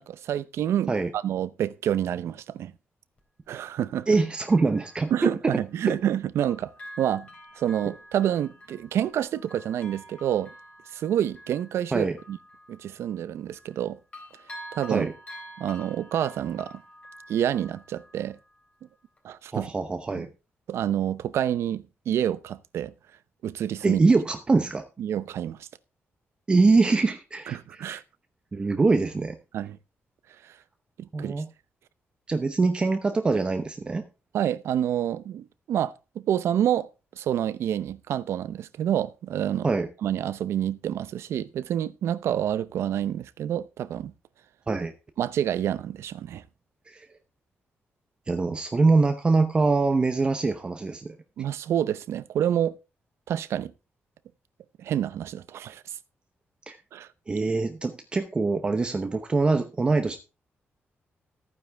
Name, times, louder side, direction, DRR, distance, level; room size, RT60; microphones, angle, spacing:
voice 1, 0.0-2.7 3.5-4.1 5.1-6.7 7.0-7.3 7.6-10.5 10.9-12.4 12.7-14.0 14.7-15.1 15.6-16.8 17.3-18.4 19.2-19.7 20.2-20.3 20.7-22.9 23.4-24.0 25.0-25.7 27.5-28.0 29.5-29.8 30.4-30.6 31.0-31.3 34.3-36.9 37.2-39.7 40.0-44.1 45.2-46.4 51.4-52.8 53.3-53.7 54.8-55.8 56.9-57.1, right 10 dB, 85° right, 0.7 m, -28 dB
Bell, 3.2-3.3 4.1-6.1 6.4-13.8 14.1-18.7 19.2-19.3, equal, 30° left, 3.6 m, -48 dB
voice 2, 4.1-5.1 11.9-12.2 14.9-15.1 19.5-20.3 23.8-24.8 26.5-28.0 28.5-29.4 31.1-31.5 32.3-34.0 39.6-39.9 44.7-44.9 46.9-47.1 48.3-51.1 56.7-56.8 57.3-60.2, right 3 dB, 20° right, 0.8 m, -23 dB
14.5 x 9.4 x 3.5 m
wide cardioid pair, 170°, 4 cm